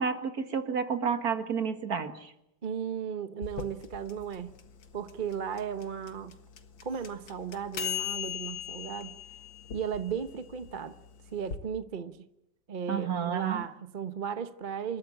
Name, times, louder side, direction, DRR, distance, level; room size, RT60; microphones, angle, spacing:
voice 1, 0.0-2.3 12.9-13.7, right 6 dB, 55° right, 2.2 m, -30 dB
voice 2, 2.6-4.5 4.9-6.4 6.8-9.2 9.7-10.9 11.3-12.3 12.7-15.0, right 7 dB, 35° right, 0.9 m, -35 dB
sound 1, 3.4-11.6, left 9 dB, 85° left, 2.4 m, -39 dB
27.5 x 14.0 x 10.0 m
omnidirectional pair, 2.0 m